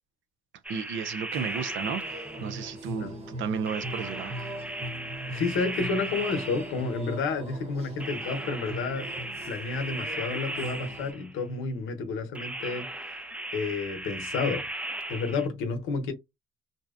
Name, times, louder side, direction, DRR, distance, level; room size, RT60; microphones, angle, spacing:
sound 1, 0.6-2.7 3.7-7.1 8.0-11.3 12.3-15.5, right 1 dB, 5° right, 0.4 m, -37 dB
voice 1, 0.7-4.3, right 6 dB, 75° right, 0.5 m, -33 dB
sound 2, 1.3-11.1, right 1 dB, 35° right, 1.1 m, -40 dB
voice 2, 5.3-12.9 13.5-14.7 15.1-16.1, left 4 dB, 90° left, 0.7 m, -30 dB
2.7 x 2.1 x 2.3 m
cardioid pair, 90°, 20 cm